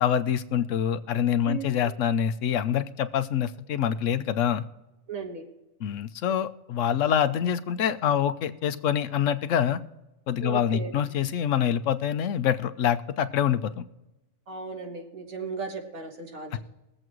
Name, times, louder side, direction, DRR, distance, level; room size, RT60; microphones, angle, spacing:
voice 1, 0.0-4.6 5.8-9.8 10.3-13.8, left 9 dB, 70° left, 12 dB, 1.1 m, -25 dB
voice 2, 5.1-5.4 10.4-10.9 14.5-16.6, right 5 dB, 80° right, 2 dB, 2.2 m, -36 dB
22.0 x 7.7 x 3.1 m, 1.0 s
omnidirectional pair, 1.4 m